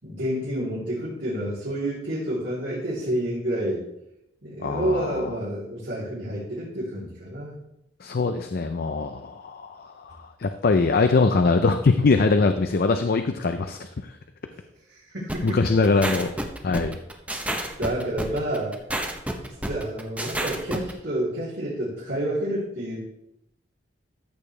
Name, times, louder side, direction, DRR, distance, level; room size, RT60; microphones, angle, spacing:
voice 1, 0.0-3.8 4.4-7.6 14.5-14.6 14.9-15.6 15.9-16.1 17.5-18.7 19.5-23.0, right 1 dB, 75° right, -10 dB, 3.2 m, -29 dB
voice 2, 4.6-5.2 8.0-13.9 15.4-16.3 16.6-17.0, left 3 dB, 55° left, 7 dB, 0.5 m, -22 dB
sound 1, 15.3-20.9, right 1 dB, 10° right, 0.8 m, -29 dB
13.5 x 6.8 x 3.3 m, 0.83 s
head